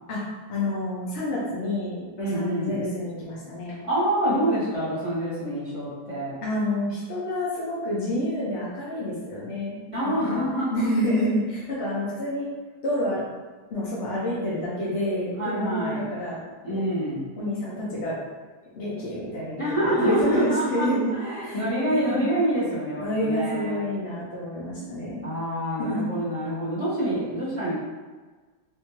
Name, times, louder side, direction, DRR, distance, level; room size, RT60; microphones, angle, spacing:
voice 1, 0.5-3.8 6.4-12.5 12.8-13.2 13.7-16.8 17.4-18.2 18.7-21.6 21.9-22.2 23.0-25.3 25.8-26.1, left 1 dB, 65° left, -7 dB, 0.6 m, -28 dB
voice 2, 2.2-2.8 3.8-6.4 9.9-10.9 15.4-16.0 16.6-17.2 19.6-23.8 25.2-27.7, right 1 dB, 20° left, -11 dB, 0.9 m, -26 dB
3.5 x 2.7 x 3.0 m, 1.3 s
omnidirectional pair, 2.2 m